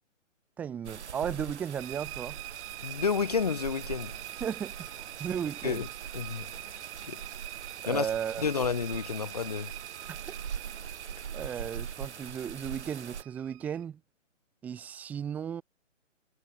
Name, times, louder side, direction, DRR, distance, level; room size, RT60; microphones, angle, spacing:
voice 1, 0.6-2.4 4.4-5.8 7.8-8.5 10.1-10.3 11.3-14.0 14.6-15.6, right 8 dB, 5° right, 0.7 m, -35 dB
sound 1, 0.8-13.2, right 7 dB, 60° right, 5.2 m, -42 dB
sound 2, 1.8-13.8, right 21 dB, 25° right, 2.1 m, -45 dB
voice 2, 2.8-4.1 5.6-5.9 6.1-6.5 7.1-7.2 7.9-8.1 8.4-9.7, left 6 dB, 30° left, 0.4 m, -30 dB
hypercardioid pair, 150°, 39 cm